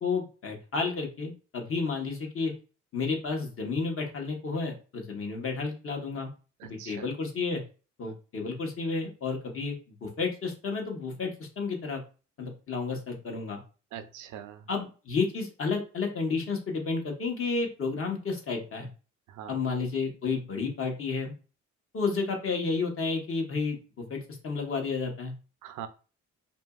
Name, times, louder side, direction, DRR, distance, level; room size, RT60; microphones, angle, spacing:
voice 1, 0.0-2.5 2.9-6.3 6.6-7.6 8.0-12.0 12.4-13.6 14.7-18.9 19.5-21.3 21.9-25.3, left 4 dB, 45° left, 2 dB, 1.0 m, -31 dB
voice 2, 6.6-7.0 13.9-14.7 19.3-19.6 25.6-25.9, right 9 dB, 85° right, 10 dB, 0.5 m, -42 dB
2.8 x 2.5 x 2.3 m, 0.35 s
cardioid pair, 90°, 30 cm